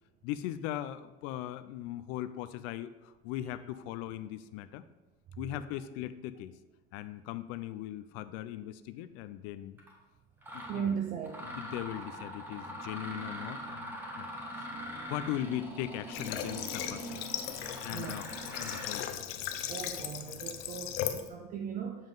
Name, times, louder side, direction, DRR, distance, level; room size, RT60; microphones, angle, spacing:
voice 1, 0.2-4.8 5.4-6.6 6.9-9.8 10.5-10.9 11.4-17.2 17.8-19.2 21.1-21.2, left 13 dB, 55° left, 12 dB, 0.4 m, -39 dB
Mechanisms, 9.8-9.9 10.4-10.8 11.2-19.1, right 1 dB, 5° right, 1.0 m, -42 dB
voice 2, 10.7-11.4 17.9-18.2 19.7-22.1, right 7 dB, 30° right, 3 dB, 0.4 m, -37 dB
Water / Water tap faucet, 16.1-21.3, left 10 dB, 90° left, 0.7 m, -37 dB
7.1 x 5.4 x 3.9 m, 1.1 s
cardioid pair, 165°, 29 cm